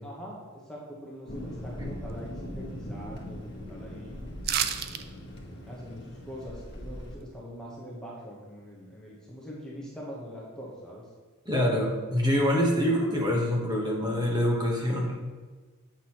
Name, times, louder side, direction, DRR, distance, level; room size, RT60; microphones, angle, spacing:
voice 1, 0.0-4.1 5.6-11.0, equal, 5° left, -5 dB, 0.9 m, -43 dB
Thunder, 1.3-7.2, equal, 50° left, 1.3 m, -40 dB
sound 1, 4.4-5.0 5.4-5.5, right 9 dB, 45° right, 0.4 m, -28 dB
voice 2, 11.5-15.2, equal, 20° right, -2 dB, 1.0 m, -25 dB
7.8 x 5.9 x 2.9 m, 1.4 s
head